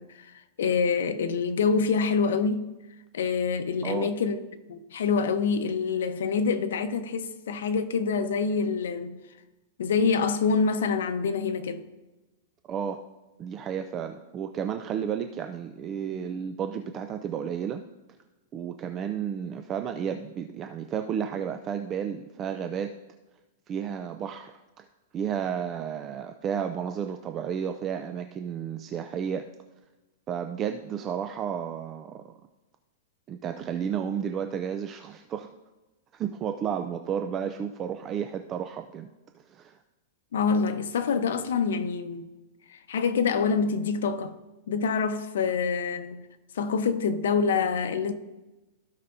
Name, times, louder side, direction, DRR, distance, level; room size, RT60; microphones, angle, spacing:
voice 1, 0.0-2.6 3.1-4.4 4.7-9.2 9.8-11.8 40.3-42.3 42.7-44.3 44.7-46.3 46.5-48.1, left 5 dB, 85° left, 0.8 m, -26 dB
voice 2, 3.8-4.1 12.7-13.0 13.4-17.8 18.5-22.9 23.7-24.9 25.1-29.4 30.3-32.2 33.3-35.5 36.1-39.1 39.3-39.8, right 8 dB, 25° right, 0.4 m, -32 dB
15.5 x 5.7 x 2.7 m
supercardioid pair, 160°, 0 cm